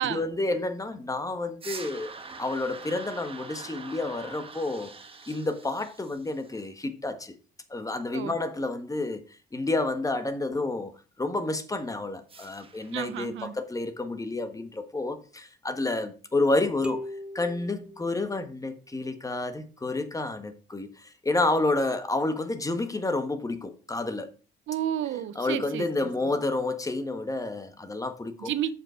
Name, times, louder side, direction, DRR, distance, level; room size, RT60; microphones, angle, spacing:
voice 1, 0.0-2.1 2.4-4.9 5.3-7.3 7.7-9.2 9.5-17.0 17.3-24.3 25.3-28.5, left 2 dB, 15° left, 1.4 m, -30 dB
sound 1, 1.6-6.6 12.3-13.3, right 4 dB, 30° right, 1.2 m, -44 dB
voice 2, 12.9-13.5 24.7-25.9 28.4-28.7, right 11 dB, 75° right, 0.8 m, -31 dB
sound 2, 16.8-18.7, left 1 dB, 5° right, 0.6 m, -40 dB
7.1 x 5.6 x 5.0 m
cardioid pair, 90°, 20 cm